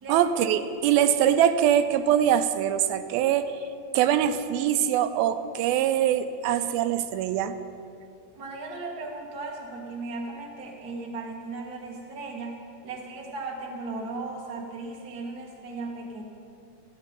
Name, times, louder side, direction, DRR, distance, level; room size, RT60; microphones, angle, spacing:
voice 1, 0.1-3.5 3.9-7.6, right 10 dB, 85° right, 10 dB, 2.4 m, -23 dB
voice 2, 8.3-12.6 12.8-16.2, right 3 dB, 40° right, -1 dB, 1.4 m, -36 dB
14.0 x 7.1 x 9.4 m, 2.5 s
omnidirectional pair, 4.3 m